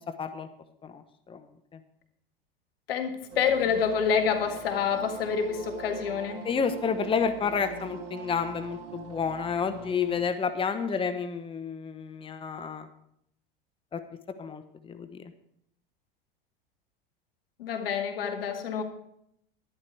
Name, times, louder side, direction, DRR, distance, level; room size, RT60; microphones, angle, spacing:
voice 1, 2.9-6.5 17.6-18.8, left 6 dB, 80° left, 6 dB, 1.8 m, -27 dB
sound 1, 3.3-10.2, right 5 dB, 60° right, 2.7 m, -43 dB
voice 2, 6.3-12.9 13.9-14.0 14.4-15.1, left 6 dB, 20° left, 9 dB, 0.9 m, -30 dB
11.0 x 11.0 x 4.7 m, 0.72 s
hypercardioid pair, 90°, 29 cm